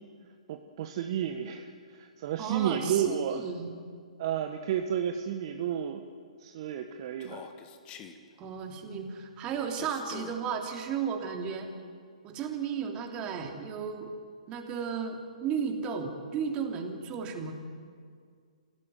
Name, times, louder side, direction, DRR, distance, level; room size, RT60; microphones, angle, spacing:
voice 1, 0.5-3.4 4.2-6.0 6.4-7.4, right 9 dB, 45° right, 5 dB, 1.4 m, -31 dB
voice 2, 2.4-3.7 8.4-11.7 12.2-14.1 14.5-17.5, right 6 dB, 25° right, 3 dB, 3.2 m, -34 dB
Human voice, 7.2-8.2 9.8-10.4, left 8 dB, 25° left, 1.8 m, -46 dB
26.0 x 17.0 x 9.4 m, 2.1 s
figure-of-eight pair, 125°, 4 cm